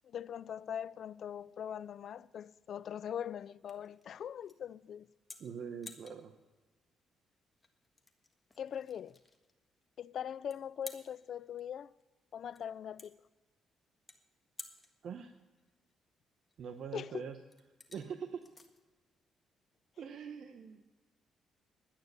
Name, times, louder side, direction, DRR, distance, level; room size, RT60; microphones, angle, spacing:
voice 1, 0.0-5.1 8.6-9.2 10.0-11.9 12.3-13.2 16.9-17.2, left 9 dB, 60° left, 0.3 m, -41 dB
sound 1, 1.4-20.2, left 3 dB, 20° left, 1.5 m, -57 dB
voice 2, 5.4-6.3 15.0-15.3 16.6-17.4 17.9-18.4 20.0-20.8, right 7 dB, 60° right, 0.8 m, -43 dB
11.5 x 9.4 x 6.7 m
cardioid pair, 90°, 0 cm